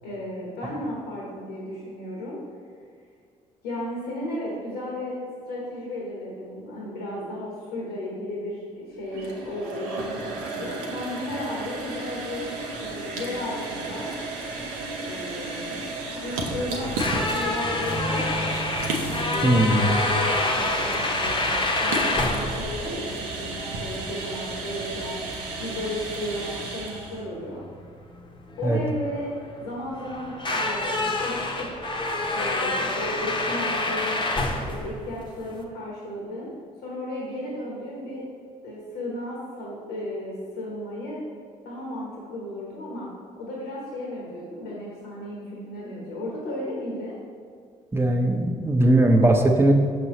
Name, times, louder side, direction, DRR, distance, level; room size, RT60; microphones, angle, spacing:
voice 1, 0.0-2.4 3.6-5.2 5.5-12.5 12.8-14.1 15.0-18.6 19.2-21.5 21.8-25.2 25.6-27.6 28.6-29.3 29.6-31.7 32.3-34.2 34.7-36.5 36.8-38.2 38.6-41.2 41.6-43.1 43.4-47.1, left 1 dB, 85° left, -4 dB, 1.2 m, -34 dB
sound 1, 9.0-27.2, right 3 dB, 80° right, 0.7 m, -33 dB
sound 2, 16.7-35.6, left 2 dB, 25° left, 0.8 m, -28 dB
voice 2, 19.4-19.9 28.6-28.8 47.9-49.7, right 1 dB, 15° right, 3 dB, 0.8 m, -19 dB
6.2 x 5.4 x 3.0 m, 2.2 s
hypercardioid pair, 55°, 17 cm